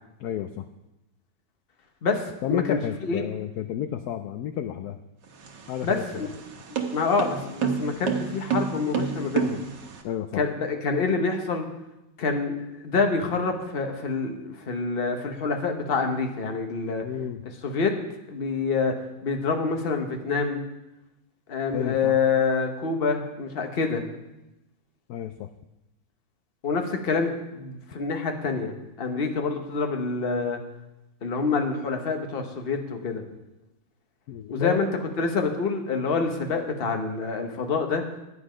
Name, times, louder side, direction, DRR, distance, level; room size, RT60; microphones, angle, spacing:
voice 1, 0.2-0.7 2.4-5.0 5.7-6.3 10.0-10.4 17.0-17.5 21.7-22.2 25.1-25.5 34.3-34.8, left 10 dB, 70° left, 9 dB, 1.0 m, -31 dB
voice 2, 2.0-3.2 5.8-6.3 6.9-9.6 10.4-11.7 12.2-12.5 12.8-17.0 17.6-18.0 18.3-18.9 19.2-20.6 21.5-24.0 26.6-28.7 29.0-30.6 31.2-33.2 34.5-34.9 35.2-38.0, left 4 dB, 35° left, 4 dB, 1.1 m, -26 dB
sound 1, 5.3-10.0, right 6 dB, 70° right, 1.7 m, -29 dB
9.8 x 9.7 x 5.1 m, 0.94 s
omnidirectional pair, 2.0 m